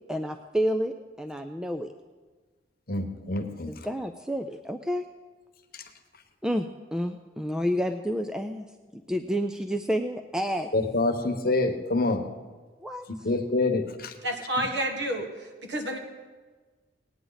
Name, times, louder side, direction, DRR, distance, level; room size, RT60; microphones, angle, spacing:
voice 1, 0.1-1.9 3.7-5.1 6.4-8.7 8.9-10.7 12.8-13.0, equal, 5° right, 6 dB, 0.3 m, -29 dB
voice 2, 2.9-3.7 5.7-5.8 10.7-12.2 13.2-14.1, left 2 dB, 50° left, 6 dB, 1.0 m, -26 dB
voice 3, 14.2-15.3 15.7-16.0, right 1 dB, 70° right, 3 dB, 1.8 m, -29 dB
18.5 x 9.4 x 4.0 m, 1.4 s
head